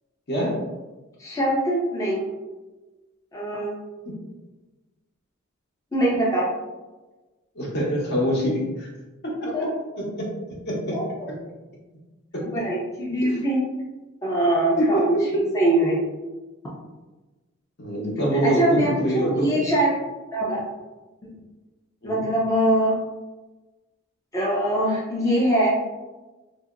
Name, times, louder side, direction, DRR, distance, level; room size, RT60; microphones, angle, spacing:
voice 1, 0.3-0.6 7.5-8.9 9.2-9.7 10.0-10.3 10.7-11.0 12.3-12.4 14.8-15.1 15.3-15.4 17.8-19.4 22.0-22.2, equal, 55° left, -3 dB, 0.8 m, -24 dB
voice 2, 1.2-2.2 3.3-3.7 5.9-6.5 9.5-9.7 10.9-11.0 12.4-13.6 14.2-16.0 18.4-19.9 20.3-20.6 22.0-22.9 24.3-25.7, right 1 dB, 15° left, -5 dB, 0.4 m, -23 dB
2.8 x 2.7 x 2.4 m, 1.2 s
head